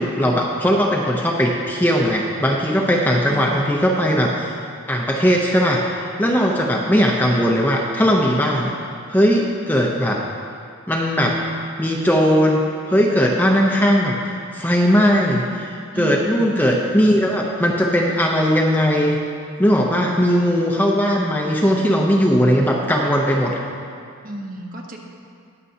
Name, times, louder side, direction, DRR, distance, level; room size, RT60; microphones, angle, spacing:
voice 1, 0.0-4.5 4.9-5.8 6.2-8.7 9.1-10.2 10.9-11.4 11.8-12.6 12.9-14.2 14.5-19.2 19.6-23.6, equal, 10° left, -1 dB, 0.6 m, -18 dB
voice 2, 3.3-3.7 15.9-16.5 24.2-25.0, right 1 dB, 40° right, 0 dB, 1.0 m, -33 dB
20.0 x 6.8 x 2.8 m, 2.3 s
head